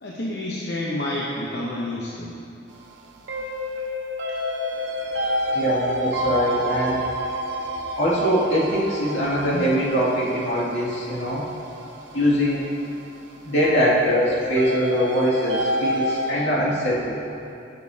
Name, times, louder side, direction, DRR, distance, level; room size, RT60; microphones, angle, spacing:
voice 1, 0.0-2.4, left 1 dB, 60° left, -5 dB, 0.8 m, -29 dB
sound 1, 2.7-16.3, left 1 dB, 80° right, 0.8 m, -29 dB
voice 2, 5.5-7.1 8.0-11.4 12.1-12.6 13.4-17.2, equal, 80° left, -7 dB, 2.3 m, -22 dB
14.5 x 6.8 x 2.8 m, 2.7 s
head